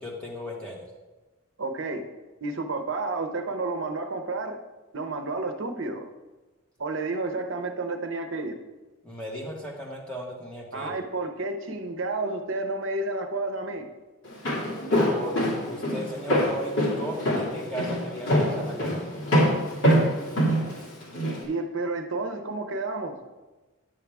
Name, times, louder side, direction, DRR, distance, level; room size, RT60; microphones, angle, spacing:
voice 1, 0.0-0.8 9.0-10.9 15.1-15.3 15.7-19.1, equal, 5° left, -3 dB, 1.6 m, -36 dB
voice 2, 1.6-2.0 2.4-4.6 4.9-6.1 6.8-8.6 10.7-13.9 21.4-23.1, right 3 dB, 60° right, 6 dB, 0.7 m, -31 dB
Walk footsteps, 14.2-21.4, equal, 60° left, 2.4 m, -24 dB
10.5 x 7.2 x 3.5 m, 1.2 s
head